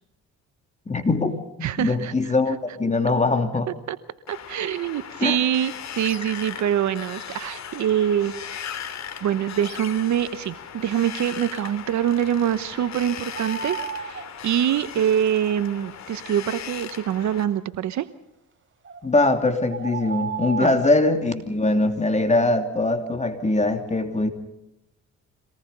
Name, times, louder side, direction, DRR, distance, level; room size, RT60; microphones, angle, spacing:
voice 1, 0.9-3.7 5.2-5.4 19.0-24.3, left 2 dB, 25° left, 6 dB, 2.8 m, -22 dB
voice 2, 1.6-2.1 3.9-4.0 4.3-8.3 9.2-18.1 20.6-20.7, right 10 dB, 70° right, 13 dB, 1.0 m, -24 dB
Wind, 4.3-17.4, left 8 dB, 60° left, 3.0 m, -38 dB
sound 1, 13.3-14.3 18.8-19.0 19.7-21.0, right 5 dB, 40° right, 4.1 m, -32 dB
25.0 x 19.0 x 5.5 m, 0.93 s
cardioid pair, 90°, 30 cm